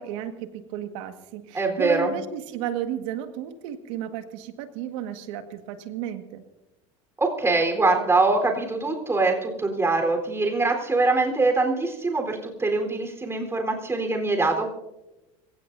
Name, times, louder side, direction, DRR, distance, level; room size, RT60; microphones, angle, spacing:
voice 1, 0.0-6.4, right 10 dB, 80° right, 7 dB, 1.8 m, -33 dB
voice 2, 1.5-2.1 7.2-14.7, right 3 dB, 15° right, 2 dB, 4.0 m, -23 dB
25.5 x 16.5 x 2.7 m, 0.96 s
supercardioid pair, 100°, 16 cm